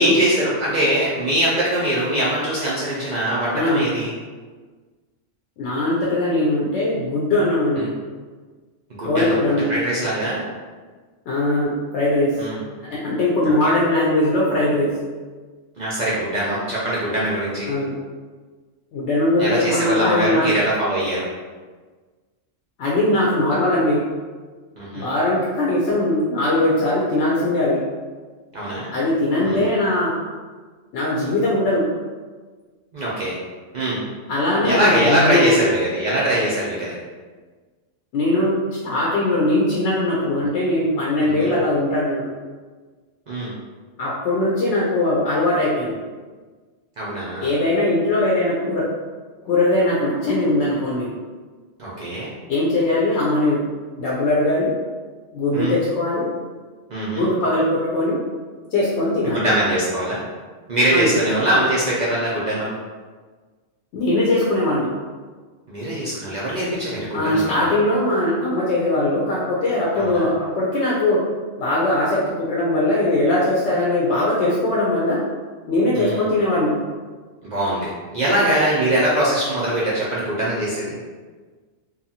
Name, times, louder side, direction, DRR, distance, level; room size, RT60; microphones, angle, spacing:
voice 1, 0.0-4.1 7.8-7.9 9.0-9.4 9.7-10.4 12.4-12.6 13.4-13.5 15.8-17.7 19.4-21.2 24.8-25.1 28.5-28.9 29.4-29.7 32.9-33.3 33.7-34.0 34.6-36.9 41.2-41.5 43.3-43.5 47.0-47.5 51.8-52.3 55.5-55.7 56.9-57.3 59.2-60.2 60.7-62.7 65.7-67.5 70.0-70.3 75.9-76.2 77.4-80.9, right 1 dB, 60° right, -7 dB, 0.4 m, -22 dB
voice 2, 3.5-3.9 5.6-7.9 9.0-9.7 11.3-12.3 12.9-14.9 17.7-17.9 18.9-20.5 22.8-24.0 24.9-27.8 28.9-30.1 30.9-31.9 34.3-35.5 38.1-42.3 44.0-45.9 47.4-48.9 49.4-51.1 52.5-53.6 54.0-54.7 55.3-56.3 57.1-58.2 58.7-59.4 60.9-61.1 63.9-64.9 67.1-71.2 71.6-75.2 75.7-76.7, left 1 dB, 70° left, -5 dB, 0.8 m, -20 dB
2.7 x 2.3 x 2.7 m, 1.4 s
omnidirectional pair, 1.3 m